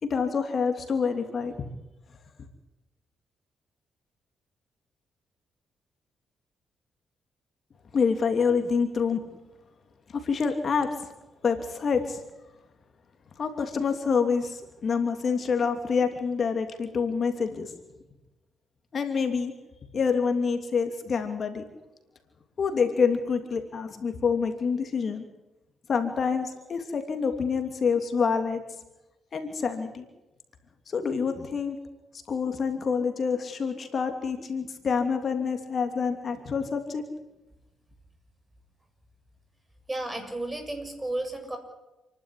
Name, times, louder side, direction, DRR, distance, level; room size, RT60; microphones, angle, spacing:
voice 1, 0.0-1.7 7.9-9.2 10.1-10.9 11.4-12.2 13.4-17.7 18.9-19.5 19.9-21.6 22.6-25.2 25.9-28.6 29.3-30.0 30.9-31.8 32.3-37.0, left 5 dB, 50° left, 6 dB, 2.9 m, -27 dB
voice 2, 39.9-41.6, right 1 dB, 15° right, 5 dB, 7.4 m, -33 dB
29.0 x 12.0 x 9.9 m, 1.0 s
cardioid pair, 85°, 0 cm